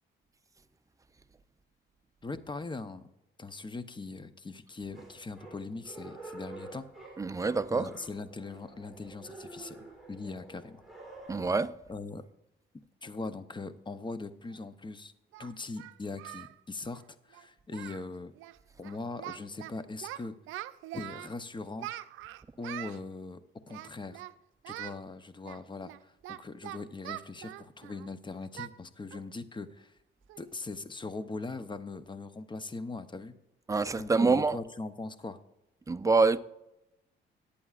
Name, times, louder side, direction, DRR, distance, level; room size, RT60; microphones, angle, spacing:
voice 1, 2.2-3.1 3.4-6.9 7.7-10.8 11.9-12.2 13.0-15.1 15.4-17.0 17.3-18.3 18.8-20.3 20.9-21.9 22.6-23.4 23.7-24.2 24.7-29.9 30.4-33.3 34.0-35.4, left 3 dB, 25° left, 0.7 m, -40 dB
sound 1, 4.9-11.5, right 2 dB, ahead, 3.2 m, -49 dB
voice 2, 7.2-7.9 11.3-11.7 33.7-34.5 35.9-36.4, right 4 dB, 15° right, 0.5 m, -26 dB
Singing, 14.5-14.6 15.3-16.5 16.8-17.0 17.3-17.4 17.7-18.1 18.3-18.6 18.8-19.7 20.0-21.3 21.8-23.0 23.7-24.3 24.6-25.0 25.4-28.1 28.6-28.8 29.1-29.3 29.7-29.8 30.3-30.6, right 15 dB, 85° right, 0.5 m, -43 dB
19.0 x 8.5 x 2.4 m
cardioid pair, 90°, 20 cm